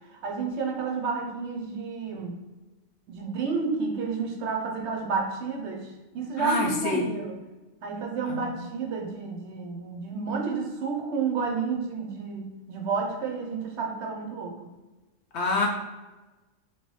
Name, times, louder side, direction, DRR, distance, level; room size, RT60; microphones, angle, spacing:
voice 1, 0.1-2.4 3.1-7.4 7.8-14.7, right 5 dB, 65° right, 1 dB, 0.8 m, -31 dB
voice 2, 6.4-7.0 8.3-8.4 15.3-15.7, left 3 dB, 65° left, 1 dB, 0.8 m, -26 dB
3.2 x 2.9 x 3.0 m, 1.2 s
omnidirectional pair, 1.4 m